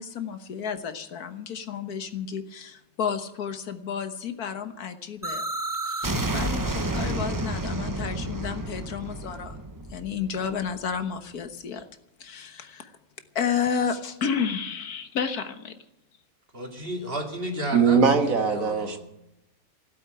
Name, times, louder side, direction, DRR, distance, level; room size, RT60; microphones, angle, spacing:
voice 1, 0.0-5.4 5.9-9.6 9.9-11.9 12.2-13.0 13.4-15.8, left 7 dB, 75° left, 1.7 m, -31 dB
sound 1, 5.2-11.0, right 1 dB, 15° right, 0.7 m, -30 dB
voice 2, 16.5-18.1 18.5-19.0, equal, 35° right, 2.8 m, -32 dB
voice 3, 17.7-19.0, right 5 dB, 60° right, 1.9 m, -21 dB
16.0 x 8.4 x 9.5 m
omnidirectional pair, 1.6 m